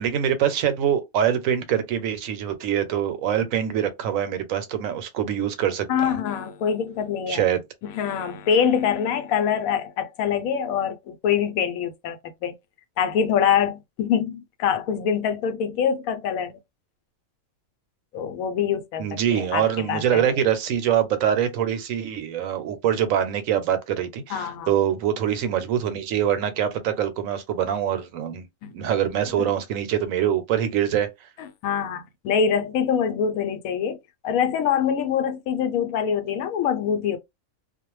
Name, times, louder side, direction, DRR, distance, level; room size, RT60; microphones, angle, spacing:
voice 1, 0.0-6.2 7.3-7.6 19.0-28.5 28.7-31.1, right 9 dB, 75° right, 1.0 m, -24 dB
voice 2, 5.9-7.4 7.8-12.5 13.0-16.5 18.1-20.2 24.3-24.7 28.6-28.7 29.4-29.5 31.4-34.0 34.2-37.2, left 7 dB, 85° left, 1.0 m, -24 dB
2.4 x 2.1 x 3.0 m
omnidirectional pair, 1.4 m